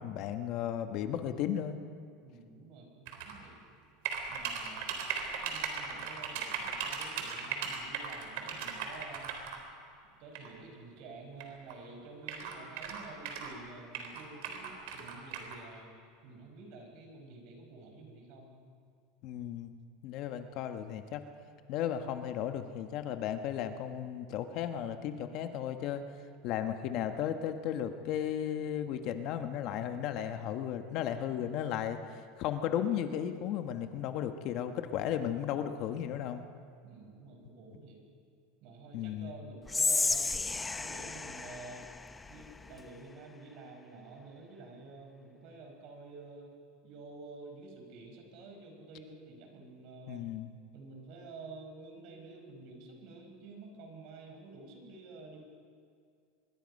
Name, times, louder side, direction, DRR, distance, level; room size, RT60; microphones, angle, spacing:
voice 1, 0.0-1.8 19.2-19.7 20.0-21.2 21.7-26.0 26.4-36.4 38.9-39.3 50.1-50.5, left 10 dB, 45° left, 7 dB, 1.2 m, -35 dB
voice 2, 2.2-3.6 4.3-4.9 5.2-9.4 10.2-15.9 16.2-18.6 36.8-38.1 38.6-40.4 40.8-41.9 42.3-46.5 46.8-50.3 50.7-55.4, right 3 dB, 50° right, 3 dB, 5.0 m, -50 dB
sound 1, 3.1-3.3 4.0-9.6 10.3-10.5 11.4-11.5 11.7-11.8 12.2-13.6 13.9-15.5, right 7 dB, 70° right, 3.8 m, -37 dB
Whispering, 39.7-42.9, left 3 dB, 10° left, 0.6 m, -33 dB
24.5 x 22.0 x 5.4 m, 2.4 s
supercardioid pair, 155°, 0 cm